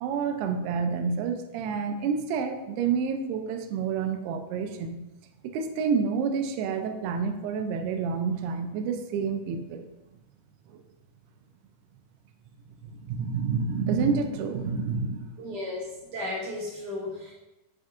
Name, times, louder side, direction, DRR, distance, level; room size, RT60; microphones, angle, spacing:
voice 1, 0.0-5.0 5.4-9.9 10.7-10.8 12.8-15.3, right 5 dB, 85° right, 6 dB, 2.6 m, -29 dB
voice 2, 15.4-17.3, left 2 dB, 60° right, -6 dB, 2.4 m, -34 dB
7.9 x 6.4 x 2.4 m, 1.0 s
omnidirectional pair, 4.6 m